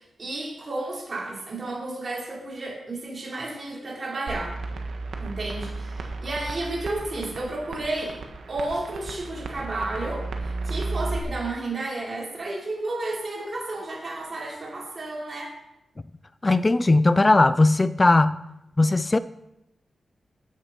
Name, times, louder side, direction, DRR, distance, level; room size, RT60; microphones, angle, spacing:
voice 1, 0.0-4.5 5.2-8.2 8.5-15.5, right 2 dB, 45° right, 4.5 m, -32 dB
sound 1, 4.3-11.2, right 3 dB, 90° right, 1.5 m, -34 dB
voice 2, 16.4-18.4 18.8-19.2, left 2 dB, 25° left, 0.4 m, -18 dB
12.5 x 10.0 x 4.6 m
cardioid pair, 85°, 0 cm